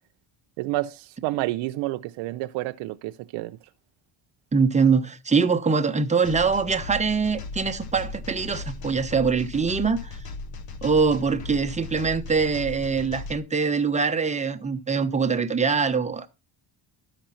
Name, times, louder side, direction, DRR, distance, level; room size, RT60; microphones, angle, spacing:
voice 1, 0.6-3.6, right 18 dB, 85° right, 0.6 m, -29 dB
voice 2, 4.5-10.2 10.8-16.3, right 5 dB, 15° right, 0.9 m, -23 dB
sound 1, 6.2-13.4, left 3 dB, 50° left, 1.1 m, -37 dB
13.0 x 5.2 x 4.3 m
cardioid pair, 115°, 45 cm